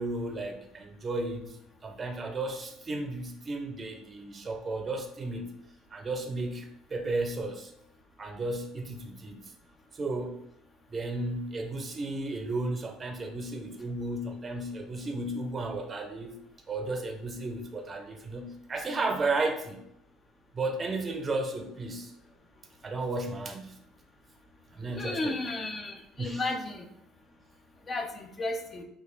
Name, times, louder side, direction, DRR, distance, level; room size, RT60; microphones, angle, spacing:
voice 1, 0.0-5.6 5.9-7.7 8.2-9.5 9.9-10.4 10.9-16.4 16.7-19.8 20.5-22.1 22.8-23.8 24.7-25.4 26.2-26.4, right 2 dB, 25° right, 4 dB, 0.6 m, -34 dB
voice 2, 24.9-26.8 27.9-28.8, left 2 dB, 25° left, 4 dB, 0.6 m, -33 dB
5.0 x 2.5 x 4.0 m, 0.78 s
cardioid pair, 120°, 0 cm